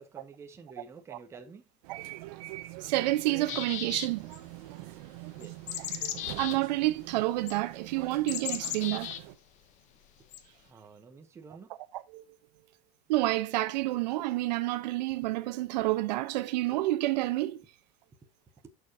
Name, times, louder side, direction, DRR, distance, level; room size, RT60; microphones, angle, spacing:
voice 1, 0.0-1.7 5.3-5.8 10.6-11.8 16.4-16.5, right 4 dB, 10° right, 1.0 m, -50 dB
sound 1, 1.8-9.4, right 17 dB, 60° right, 1.1 m, -44 dB
voice 2, 2.8-4.3 6.0-9.2 12.1-12.2 13.1-17.6, right 17 dB, 85° right, 1.0 m, -29 dB
sound 2, 3.4-4.4 5.4-6.6 7.5-7.6 8.3-9.2 10.3-10.4, left 11 dB, 35° left, 0.9 m, -36 dB
11.0 x 6.8 x 2.8 m
supercardioid pair, 175°, 21 cm